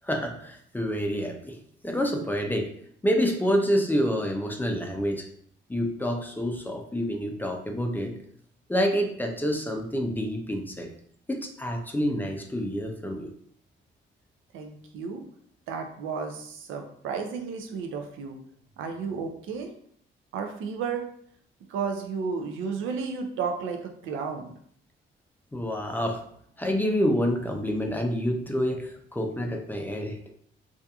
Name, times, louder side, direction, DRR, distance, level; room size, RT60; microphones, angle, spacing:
voice 1, 0.0-1.6 1.8-2.7 3.0-5.3 5.7-8.2 8.7-10.9 11.3-13.3 25.5-26.2 26.6-30.2, equal, 10° left, 3 dB, 0.4 m, -27 dB
voice 2, 14.5-15.3 15.7-18.4 18.8-19.7 20.3-21.1 21.7-24.5, right 5 dB, 85° right, 4 dB, 0.5 m, -32 dB
2.6 x 2.4 x 2.3 m, 0.64 s
cardioid pair, 90°, 20 cm